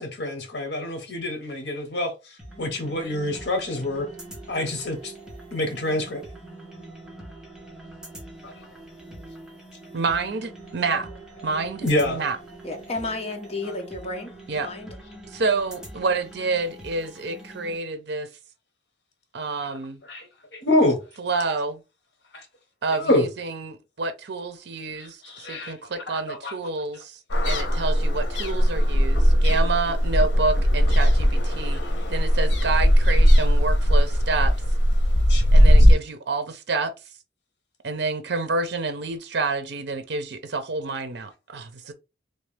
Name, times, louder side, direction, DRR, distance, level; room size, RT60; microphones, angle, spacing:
voice 1, 0.0-4.1 4.5-5.1 5.5-6.2 8.4-8.5 11.8-12.2 20.1-21.0 22.3-22.4 23.0-23.3 25.0-26.6 35.3-35.5, left 1 dB, 70° left, 1.1 m, -26 dB
sound 1, 2.4-17.8, right 2 dB, 5° right, 1.0 m, -43 dB
voice 2, 9.9-11.1 11.4-12.4 14.5-14.7 15.3-18.3 19.3-20.0 21.2-21.8 22.8-27.2 27.4-31.8 32.1-34.5 35.5-36.9 37.8-41.9, right 3 dB, 65° right, 0.6 m, -28 dB
voice 3, 12.6-14.9, left 2 dB, 35° left, 0.9 m, -33 dB
sound 2, 27.3-35.9, equal, 90° left, 0.8 m, -18 dB
3.2 x 2.7 x 3.3 m
head